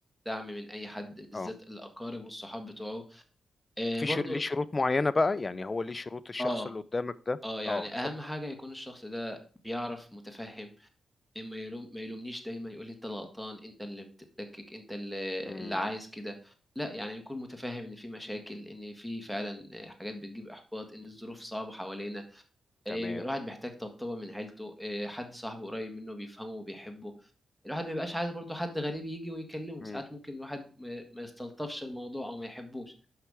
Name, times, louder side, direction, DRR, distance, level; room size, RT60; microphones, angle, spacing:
voice 1, 0.2-3.2 3.8-4.4 6.4-6.7 7.4-9.4 9.6-10.9 11.3-14.0 14.4-22.4 22.8-27.1 27.6-32.9, left 1 dB, 5° right, 5 dB, 1.7 m, -38 dB
voice 2, 4.0-7.4 7.7-7.9 15.4-15.8 22.9-23.2 29.8-30.0, left 3 dB, 35° left, 15 dB, 0.5 m, -31 dB
5.8 x 5.6 x 4.8 m, 0.38 s
cardioid pair, 60°, 0 cm